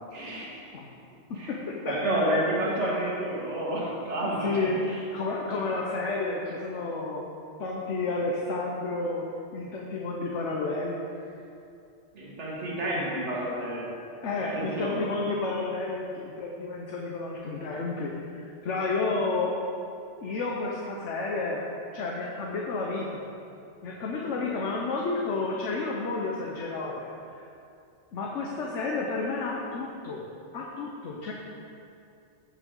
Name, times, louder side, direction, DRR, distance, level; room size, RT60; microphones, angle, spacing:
voice 1, 0.1-0.5 1.3-1.5 1.9-4.6 4.8-5.0 12.1-13.9 14.5-15.0, right 1 dB, 70° right, -5 dB, 2.0 m, -30 dB
voice 2, 1.3-2.3 4.4-4.8 5.1-7.2 7.6-9.3 9.5-11.0 14.2-18.1 18.6-19.5 20.2-21.6 21.9-23.2 23.8-27.5 28.1-30.2 30.5-31.3, left 3 dB, 80° left, -2 dB, 1.2 m, -31 dB
15.0 x 5.6 x 3.8 m, 2.6 s
omnidirectional pair, 1.2 m